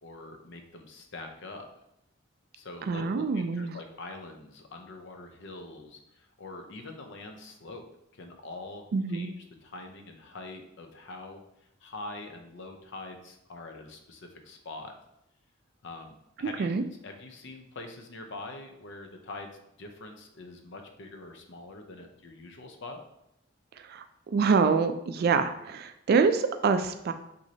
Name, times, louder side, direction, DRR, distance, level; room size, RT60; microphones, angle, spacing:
voice 1, 0.0-1.7 2.5-7.8 8.1-11.4 11.8-15.0 15.8-16.7 17.0-19.5 19.8-23.0, left 2 dB, 65° left, 5 dB, 0.6 m, -44 dB
voice 2, 2.9-3.8 8.9-9.3 16.6-16.8 23.8-27.1, right 5 dB, 50° right, 8 dB, 0.3 m, -26 dB
6.0 x 2.7 x 2.8 m, 0.82 s
head